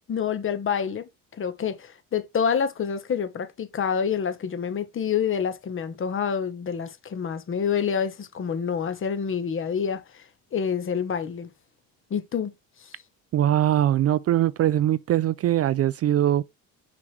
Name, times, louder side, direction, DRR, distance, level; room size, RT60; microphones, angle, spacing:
voice 1, 0.1-1.1 1.4-10.2 10.5-11.5 12.1-12.5 12.8-12.9, left 7 dB, 35° left, 1.2 m, -27 dB
voice 2, 13.3-16.4, right 12 dB, 45° right, 0.4 m, -22 dB
6.1 x 6.0 x 3.3 m
cardioid pair, 130°, 35 cm